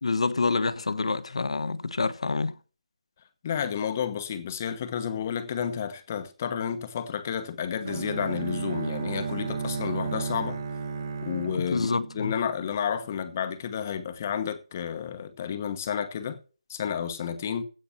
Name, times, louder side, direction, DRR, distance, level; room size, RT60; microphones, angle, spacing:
voice 1, 0.0-2.5 11.5-12.3, left 3 dB, 65° left, 1.1 m, -27 dB
voice 2, 3.4-10.6 11.2-11.9 12.1-16.4 16.7-17.6, left 8 dB, 20° left, 1.0 m, -31 dB
Bowed string instrument, 7.8-12.8, right 5 dB, 35° right, 1.2 m, -33 dB
16.0 x 5.8 x 7.0 m
figure-of-eight pair, 175°, 3 cm